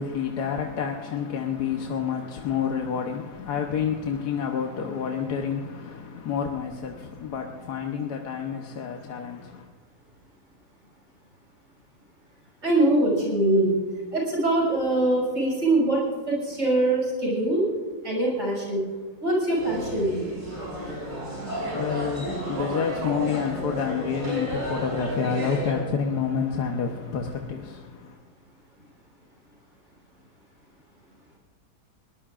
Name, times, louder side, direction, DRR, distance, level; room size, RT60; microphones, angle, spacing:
voice 1, 0.0-9.7 20.8-28.2, left 6 dB, 80° left, 1.6 m, -29 dB
voice 2, 12.6-13.7 14.1-16.0 16.3-17.6 18.0-18.8 19.2-20.1, right 1 dB, 50° right, 6.5 m, -23 dB
sound 1, 19.6-25.8, equal, 85° right, 6.3 m, -32 dB
22.0 x 19.5 x 2.5 m
omnidirectional pair, 1.7 m